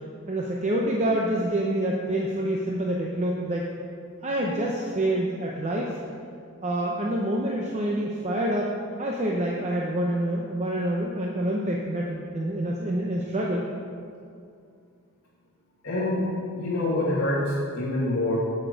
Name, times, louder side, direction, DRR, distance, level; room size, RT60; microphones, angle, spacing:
voice 1, 0.3-3.7 4.2-6.0 6.6-8.7 9.0-13.7, right 1 dB, 30° right, -2 dB, 0.7 m, -27 dB
voice 2, 15.8-16.3 16.6-18.4, left 1 dB, 60° left, -10 dB, 2.1 m, -26 dB
8.2 x 7.8 x 5.1 m, 2.3 s
head